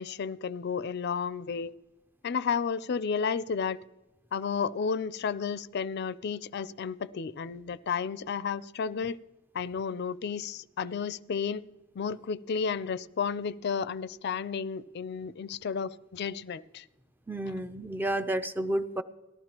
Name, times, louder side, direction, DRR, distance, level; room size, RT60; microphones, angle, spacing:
voice 1, 0.0-1.7 2.2-3.8 4.3-9.2 9.5-11.6 12.0-16.8, left 6 dB, 55° left, 18 dB, 0.4 m, -32 dB
voice 2, 17.3-19.0, right 1 dB, 10° right, 9 dB, 0.5 m, -31 dB
18.5 x 14.0 x 2.9 m, 1.0 s
head